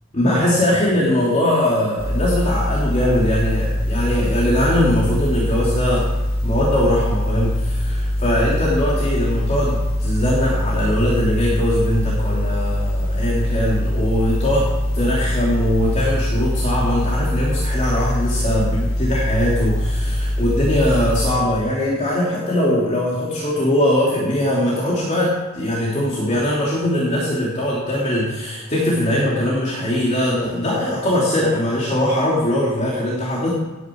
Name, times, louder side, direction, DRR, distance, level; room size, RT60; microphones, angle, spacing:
voice 1, 0.1-6.1 6.4-14.7 14.9-33.5, left 1 dB, 35° left, -6 dB, 3.2 m, -21 dB
sound 1, 2.0-21.3, left 1 dB, 75° left, 5.0 m, -22 dB
17.5 x 10.5 x 4.7 m, 1.2 s
head